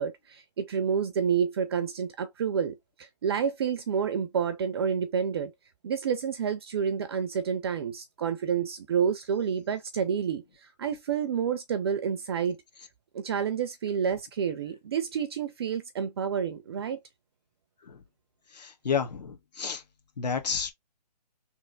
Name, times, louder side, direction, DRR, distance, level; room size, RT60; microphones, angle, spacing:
voice 1, 0.0-5.5 5.8-12.6 13.1-17.0, right 7 dB, 35° right, 0.5 m, -29 dB
voice 2, 18.5-19.8 20.2-20.7, left 6 dB, 75° left, 1.4 m, -30 dB
3.4 x 2.9 x 3.7 m
hypercardioid pair, 155°, 21 cm